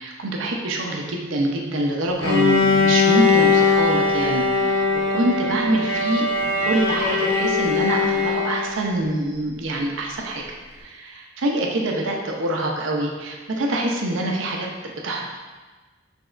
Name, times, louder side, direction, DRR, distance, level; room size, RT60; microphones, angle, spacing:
voice 1, 0.0-6.3 6.6-10.4 10.8-15.3, right 1 dB, 80° right, 0 dB, 0.6 m, -25 dB
Bowed string instrument, 2.2-8.9, left 4 dB, 80° left, 0.9 m, -20 dB
5.0 x 3.5 x 2.5 m, 1.3 s
head